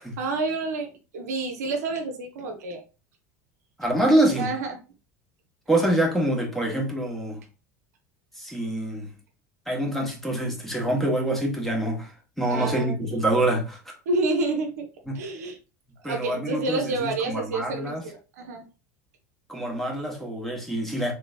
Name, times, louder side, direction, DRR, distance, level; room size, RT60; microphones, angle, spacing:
voice 1, 0.2-2.8 4.4-4.8 12.5-13.2 14.1-14.9 15.1-15.6 16.0-18.7, right 3 dB, 65° right, 0.7 m, -29 dB
voice 2, 3.8-4.5 5.7-7.4 8.4-9.1 9.7-12.1 12.4-13.8 15.1-15.2 16.0-18.0 19.5-21.1, right 1 dB, 5° left, 1.1 m, -25 dB
3.3 x 3.0 x 2.4 m
figure-of-eight pair, 75°, 9 cm